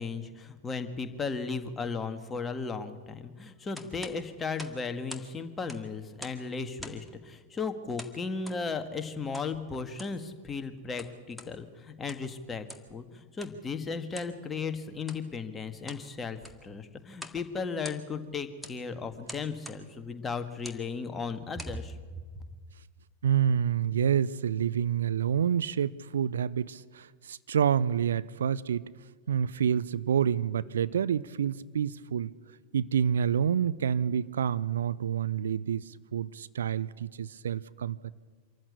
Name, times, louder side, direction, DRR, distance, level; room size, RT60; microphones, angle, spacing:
voice 1, 0.0-22.0, left 4 dB, 15° left, 8 dB, 1.7 m, -36 dB
sound 1, 3.7-5.3 5.6-6.5 6.8-7.1 8.0-8.6 9.3-9.5 9.9-10.2 10.8-11.5 11.9-12.3 12.7-12.9 13.4-13.6 14.1-14.4 15.0-15.2 15.7-16.1 16.4-16.7 17.1-17.4 17.7-18.2 18.6-18.8 19.3-19.8 20.5-20.8 21.4-21.8, equal, ahead, 1.9 m, -45 dB
voice 2, 23.2-28.9 29.3-32.3 32.7-38.1, right 8 dB, 65° right, 17 dB, 0.5 m, -28 dB
25.5 x 14.0 x 8.3 m, 1.5 s
figure-of-eight pair, 90°, 0 cm